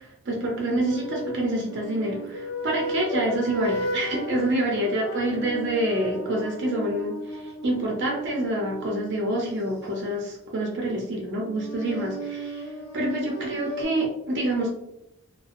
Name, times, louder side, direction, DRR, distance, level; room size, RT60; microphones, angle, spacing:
voice 1, 0.0-14.7, right 1 dB, 55° right, -1 dB, 0.5 m, -27 dB
sound 1, 0.8-9.9 11.4-13.8, right 1 dB, 70° left, 0.5 m, -35 dB
2.4 x 2.1 x 2.5 m, 0.81 s
head